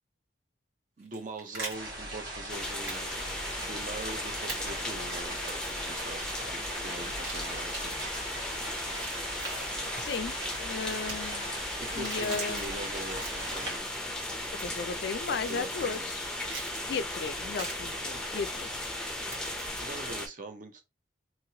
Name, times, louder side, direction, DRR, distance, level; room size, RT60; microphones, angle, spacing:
voice 1, 1.0-3.1 3.6-8.0 11.8-13.9 15.5-16.3 19.8-20.9, right 2 dB, 40° right, 0.6 m, -42 dB
sound 1, 1.0-1.8 2.9-3.0 3.3-3.4 4.5-4.6 5.4-5.8 7.0-7.8 8.7-9.7 10.9-11.1 11.8-12.7 13.1-13.6 14.6-14.9 15.4-15.5 16.5-16.7 17.5-17.7 19.2-19.7, right 3 dB, 90° right, 1.6 m, -42 dB
sound 2, 1.7-13.8, right 1 dB, 65° right, 1.5 m, -40 dB
sound 3, 2.5-20.3, left 1 dB, 5° left, 0.5 m, -36 dB
voice 2, 10.0-11.5 11.9-12.6 14.6-16.2 16.9-18.8, left 5 dB, 55° left, 0.3 m, -35 dB
3.0 x 2.8 x 2.8 m
head